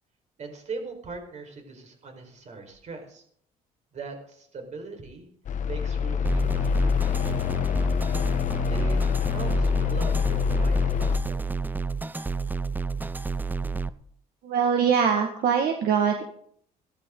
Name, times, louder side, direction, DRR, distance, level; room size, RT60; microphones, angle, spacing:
voice 1, 0.4-3.2 3.9-5.3 5.6-7.5 8.7-9.0 9.3-11.6, right 4 dB, 45° right, 3 dB, 4.7 m, -40 dB
sound 1, 5.4-11.2, left 6 dB, 45° left, 1.1 m, -25 dB
sound 2, 6.3-13.9, right 4 dB, 10° right, 0.5 m, -30 dB
voice 2, 14.4-16.2, right 7 dB, 65° right, 3 dB, 1.8 m, -23 dB
16.0 x 13.5 x 3.9 m, 0.64 s
cardioid pair, 110°, 17 cm